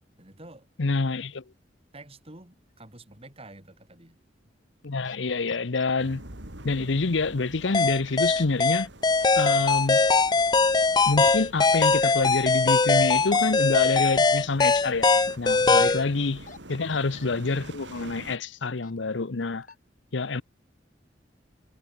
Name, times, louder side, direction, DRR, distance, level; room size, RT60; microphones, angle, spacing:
voice 1, 0.2-0.7 1.9-4.2 16.7-17.0, right 2 dB, 30° right, 5.7 m, -49 dB
voice 2, 0.8-1.4 4.8-6.2 6.6-8.9 9.4-10.0 11.1-15.1 15.4-19.7 20.1-20.4, left 3 dB, 85° left, 0.9 m, -27 dB
sound 1, 2.8-2.9 4.8-5.2 5.5-5.9 7.5-7.8 8.1-8.4 9.1-9.3 10.2-10.5 11.3-11.7 12.0-12.4 14.7-14.9 16.2-16.6 16.9-17.3 17.9-18.1 18.8-19.0 19.4-19.8, left 5 dB, 45° left, 3.8 m, -46 dB
sound 2, 6.0-18.4, right 1 dB, 75° right, 5.0 m, -46 dB
sound 3, 7.7-16.0, left 4 dB, 25° left, 0.5 m, -21 dB
head